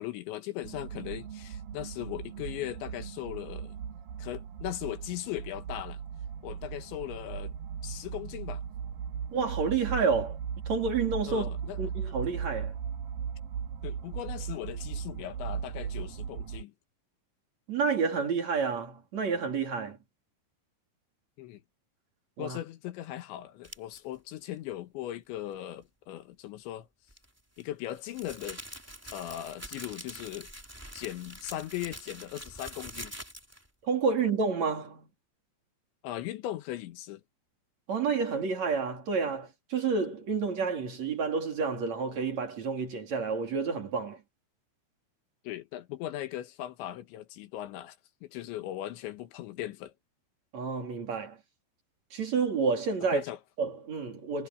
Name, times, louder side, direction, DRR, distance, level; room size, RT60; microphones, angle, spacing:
voice 1, 0.0-3.8 4.2-6.0 6.4-7.5 7.8-8.6 11.2-11.8 13.8-16.7 21.4-21.6 22.4-26.9 27.6-28.6 29.1-30.5 30.9-33.2 36.0-37.2 45.5-48.0 48.2-49.9 53.1-53.4, left 13 dB, 75° left, 3.5 m, -38 dB
sound 1, 0.6-16.6, right 7 dB, 55° right, 3.1 m, -38 dB
voice 2, 9.3-10.4 10.7-12.7 17.7-20.0 22.4-22.6 33.8-35.1 37.9-44.2 50.5-51.4 52.1-53.2 53.6-54.5, right 5 dB, 40° right, 4.0 m, -29 dB
sound 2, 23.6-24.0 27.1-33.7, right 1 dB, 5° right, 2.3 m, -45 dB
omnidirectional pair, 5.4 m